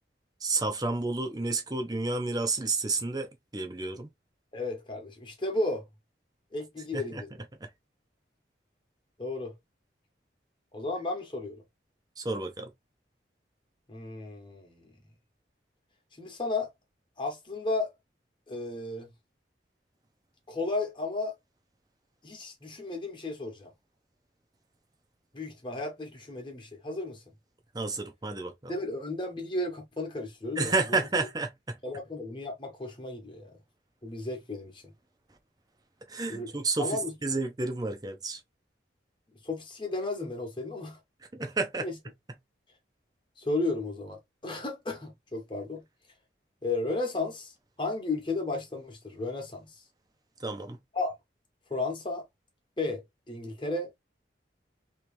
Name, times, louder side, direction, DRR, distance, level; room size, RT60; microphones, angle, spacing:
voice 1, 0.4-4.1 6.9-7.2 12.2-12.7 27.7-28.7 30.6-31.8 36.1-38.4 41.3-41.9 50.4-50.8, right 3 dB, 20° right, 0.6 m, -31 dB
voice 2, 4.5-5.8 6.5-7.3 9.2-9.5 10.7-11.6 13.9-14.9 16.2-16.7 17.2-17.9 18.5-19.1 20.5-21.3 22.2-23.7 25.3-27.2 28.7-31.0 31.8-33.6 34.0-34.8 36.3-37.1 39.4-41.0 41.8-42.0 43.4-45.8 46.6-49.7 50.9-51.1 51.7-52.2 52.8-53.9, left 2 dB, 25° left, 1.2 m, -34 dB
3.1 x 3.0 x 3.2 m
head